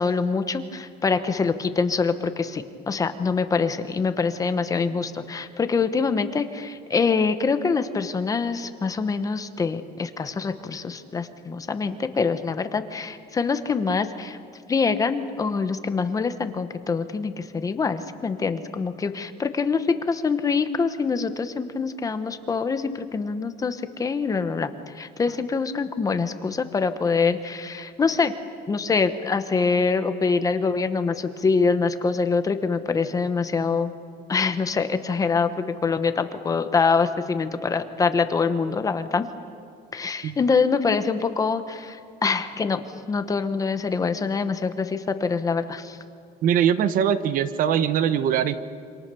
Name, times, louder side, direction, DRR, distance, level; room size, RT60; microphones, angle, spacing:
voice 1, 0.0-14.4 14.7-28.3 28.7-33.9 34.3-39.3 39.9-46.0, left 4 dB, 20° left, 9 dB, 1.0 m, -25 dB
voice 2, 46.4-48.5, right 9 dB, 50° right, 12 dB, 1.0 m, -22 dB
27.5 x 26.5 x 6.9 m, 2.4 s
cardioid pair, 180°, 18 cm